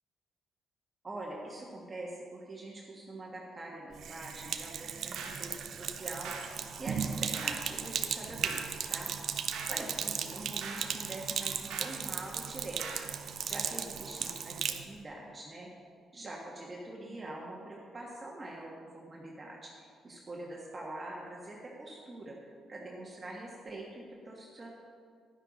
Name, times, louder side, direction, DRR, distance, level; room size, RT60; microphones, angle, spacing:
voice 1, 1.0-9.1 9.7-13.0 13.4-15.7 16.1-24.7, right 2 dB, 30° right, -3 dB, 1.5 m, -44 dB
Sink (filling or washing), 3.9-14.8, right 7 dB, 65° right, 0.6 m, -36 dB
sound 1, 5.2-5.5 6.2-6.6 7.3-7.7 8.4-8.8 9.5-9.8 10.6-10.9 11.7-12.0 12.8-13.1, right 5 dB, 90° right, 1.1 m, -42 dB
10.5 x 10.0 x 4.1 m, 2.3 s
cardioid pair, 90°, 0 cm